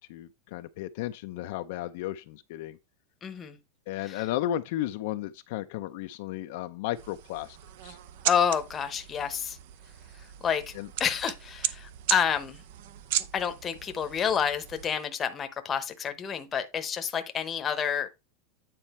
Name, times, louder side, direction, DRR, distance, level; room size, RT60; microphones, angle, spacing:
voice 1, 0.1-2.8 3.9-7.6 7.8-8.0 10.7-10.9, left 13 dB, 60° left, 0.5 m, -34 dB
voice 2, 3.2-3.6 4.0-4.2 8.2-9.6 10.4-10.7 11.0-12.6 13.3-18.1, left 7 dB, 20° left, 0.9 m, -29 dB
sound 1, 6.9-15.0, right 12 dB, 60° right, 0.6 m, -36 dB
9.2 x 4.3 x 4.2 m
supercardioid pair, 160°, 0 cm